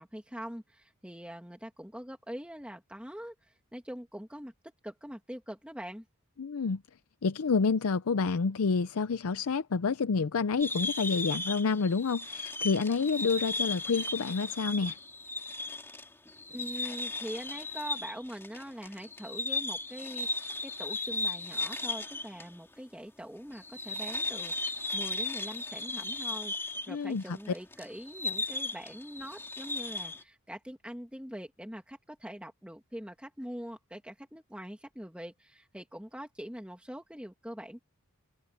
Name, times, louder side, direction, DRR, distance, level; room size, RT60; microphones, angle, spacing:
voice 1, 0.0-4.5 4.8-6.0 16.5-37.8, equal, 5° right, 2.3 m, -43 dB
voice 2, 6.4-6.8 7.2-15.0 26.9-27.4, left 4 dB, 70° left, 0.5 m, -29 dB
sound 1, 10.6-22.5 22.7-22.8 23.5-30.2, left 2 dB, 10° left, 2.7 m, -36 dB
open air
head